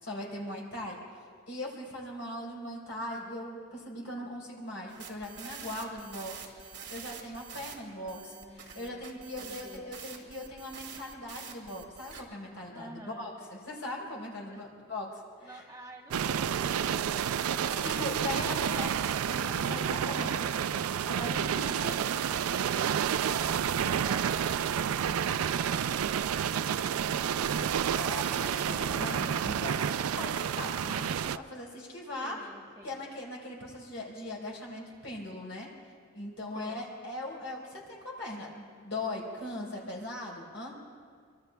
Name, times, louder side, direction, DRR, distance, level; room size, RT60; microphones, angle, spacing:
voice 1, 0.0-1.0 1.5-15.1 15.4-15.6 17.7-20.4 20.7-22.1 23.0-23.4 28.0-32.4 32.8-35.7 36.1-40.7, left 1 dB, 60° left, -3 dB, 4.2 m, -40 dB
sound 1, 4.9-7.7 8.1-12.2, right 7 dB, 55° right, 2.1 m, -46 dB
voice 2, 7.9-9.1 9.4-9.9 12.7-13.4 14.5-14.7 15.4-18.6 32.2-33.0 36.5-36.8, right 1 dB, 15° right, -1 dB, 1.0 m, -51 dB
sound 2, 16.1-31.4, right 8 dB, 90° right, 0.4 m, -30 dB
24.5 x 24.5 x 2.3 m, 2.1 s
head